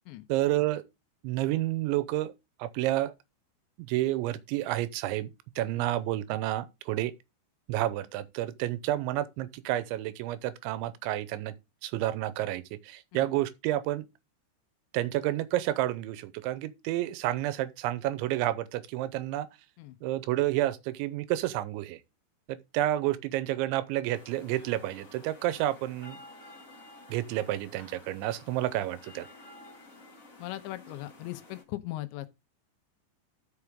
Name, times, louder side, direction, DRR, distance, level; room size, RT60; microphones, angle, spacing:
voice 1, 0.3-0.8 1.2-2.3 2.6-3.1 3.8-5.3 5.6-7.1 7.7-11.5 11.8-14.1 14.9-19.5 20.0-22.0 22.5-26.2 27.1-29.3, right 14 dB, 85° right, 3.1 m, -30 dB
sound 1, 24.1-31.6, left 2 dB, 45° left, 1.0 m, -52 dB
voice 2, 30.4-32.3, left 16 dB, 80° left, 3.1 m, -39 dB
12.0 x 6.6 x 3.6 m
omnidirectional pair, 5.3 m